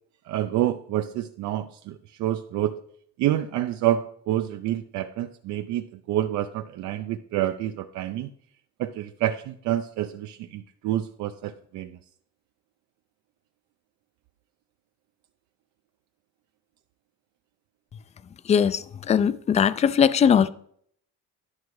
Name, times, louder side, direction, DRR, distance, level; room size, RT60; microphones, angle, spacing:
voice 1, 0.3-2.7 3.2-8.3 8.8-12.0, right 12 dB, 75° right, 0.6 m, -28 dB
voice 2, 18.5-20.5, left 7 dB, 25° left, 0.3 m, -20 dB
11.5 x 5.9 x 4.7 m
cardioid pair, 130°, 29 cm